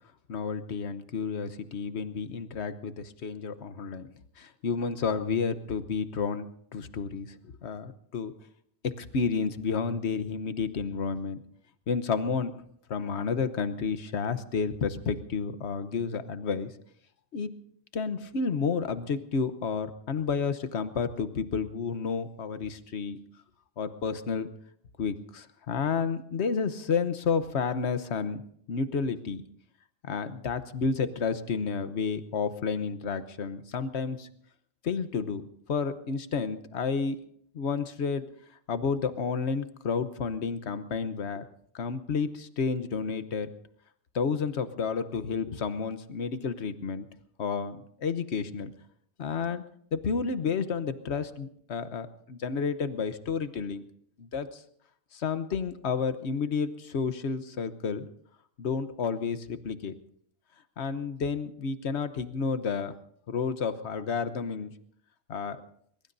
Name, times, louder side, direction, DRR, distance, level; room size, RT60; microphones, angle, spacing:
voice 1, 0.3-4.1 4.4-7.4 7.6-8.3 8.8-11.4 11.9-12.5 12.9-16.7 17.3-17.5 17.9-23.2 23.8-24.5 25.0-28.4 28.7-29.4 30.0-34.3 34.8-35.4 35.7-37.2 37.5-38.3 38.7-41.4 41.7-43.5 44.1-47.1 47.4-48.7 49.2-49.7 49.9-53.8 54.2-54.6 55.1-58.1 58.6-59.9 60.8-63.0 63.3-64.7 65.3-65.6, left 5 dB, 60° left, 11 dB, 1.2 m, -31 dB
22.5 x 22.0 x 2.7 m, 0.66 s
omnidirectional pair, 1.3 m